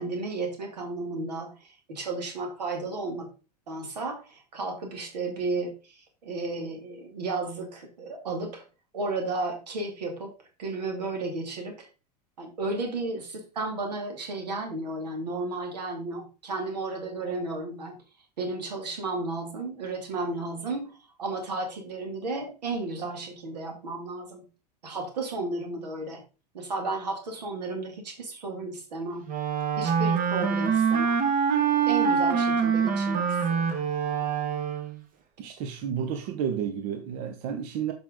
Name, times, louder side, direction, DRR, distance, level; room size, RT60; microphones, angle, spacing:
voice 1, 0.0-3.3 3.7-8.6 8.9-10.3 10.6-11.9 12.4-17.9 18.4-24.5 24.8-26.2 26.5-29.3 29.8-31.2 31.9-33.7, right 3 dB, 90° right, 2.4 m, -33 dB
Wind instrument woodwind instrument, 29.3-35.0, right 6 dB, 40° right, 1.6 m, -25 dB
voice 2, 35.4-37.9, right 8 dB, 60° right, 1.0 m, -31 dB
7.3 x 5.4 x 3.7 m
hypercardioid pair, 100°, 21 cm